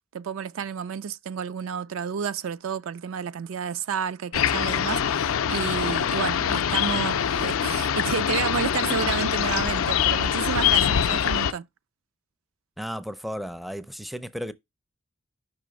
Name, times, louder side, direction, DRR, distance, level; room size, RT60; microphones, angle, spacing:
voice 1, 0.1-11.7, right 7 dB, 75° right, 0.4 m, -31 dB
sound 1, 4.3-11.5, left 8 dB, 85° left, 0.4 m, -24 dB
voice 2, 12.8-14.5, equal, ahead, 0.4 m, -34 dB
5.7 x 3.3 x 5.1 m
head